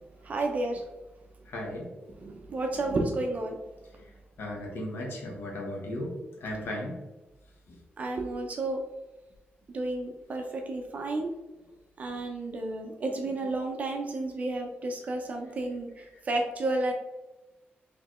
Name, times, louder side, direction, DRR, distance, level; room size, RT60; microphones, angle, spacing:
voice 1, 0.2-0.9 2.2-3.6 8.0-8.8 9.7-11.4 12.0-16.9, right 2 dB, 40° right, 2 dB, 0.5 m, -31 dB
voice 2, 1.5-1.9 2.2-2.3 4.0-4.1 4.4-7.0 7.7-7.8, left 1 dB, 70° left, -2 dB, 1.0 m, -36 dB
4.2 x 3.1 x 3.0 m, 1.0 s
wide cardioid pair, 165°, 4 cm